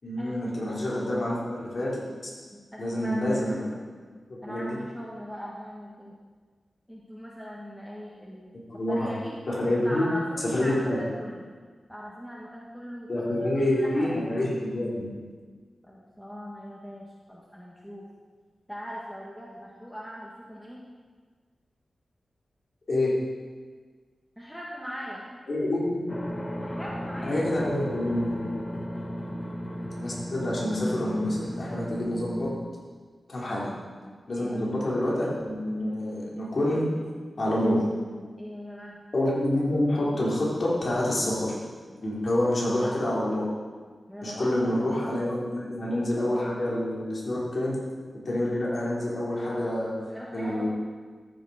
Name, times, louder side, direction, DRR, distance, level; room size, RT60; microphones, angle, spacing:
voice 1, 0.0-2.3 2.8-3.7 4.3-4.7 8.7-9.1 9.5-10.1 10.5-11.0 13.1-15.1 22.9-23.1 25.5-26.1 27.2-28.5 30.0-32.5 33.3-33.7 34.3-36.9 37.4-37.8 39.1-41.6 42.0-43.4 44.2-47.8 48.3-49.9 50.3-50.7, left 1 dB, 55° left, -6 dB, 3.6 m, -27 dB
voice 2, 2.5-3.6 4.4-6.1 6.9-9.4 9.8-11.5 11.9-14.2 15.8-18.0 18.7-20.8 24.4-25.2 26.6-27.7 29.2-29.5 33.5-33.6 34.4-34.8 38.4-39.0 44.1-44.8 45.5-45.8 50.1-50.7, equal, 5° left, -5 dB, 1.5 m, -40 dB
sound 1, 26.1-32.6, equal, 25° left, 1.1 m, -35 dB
14.0 x 6.9 x 5.0 m, 1.5 s
wide cardioid pair, 95°, 0 cm